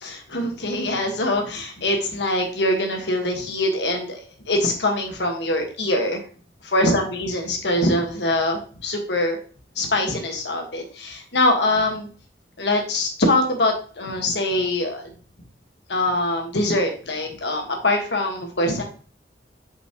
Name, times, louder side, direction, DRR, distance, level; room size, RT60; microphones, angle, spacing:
voice 1, 0.0-4.2 4.5-6.2 6.7-9.4 9.8-12.1 12.6-15.1 15.9-18.8, left 1 dB, 75° left, 3 dB, 1.6 m, -23 dB
5.9 x 5.7 x 3.0 m, 0.40 s
head